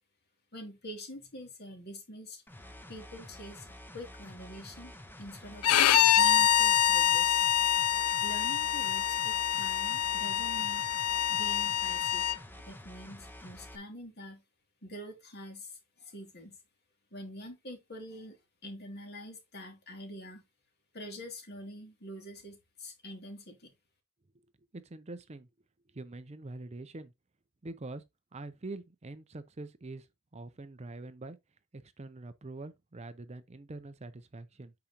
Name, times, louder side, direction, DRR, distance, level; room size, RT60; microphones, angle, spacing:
voice 1, 0.5-2.4 2.9-3.7 3.9-5.7 6.2-7.5 8.2-10.9 11.3-12.2 12.7-14.4 14.8-16.6 17.1-20.4 20.9-23.7, equal, 45° left, 2.8 m, -45 dB
sound 1, 2.5-13.8, left 1 dB, 10° left, 0.9 m, -49 dB
Bowed string instrument, 5.6-12.4, left 11 dB, 85° left, 0.5 m, -26 dB
voice 2, 24.7-25.5 25.9-27.1 27.6-28.0 28.3-30.1 30.3-31.4 31.7-34.7, right 2 dB, 30° right, 0.5 m, -44 dB
8.7 x 5.7 x 2.9 m
head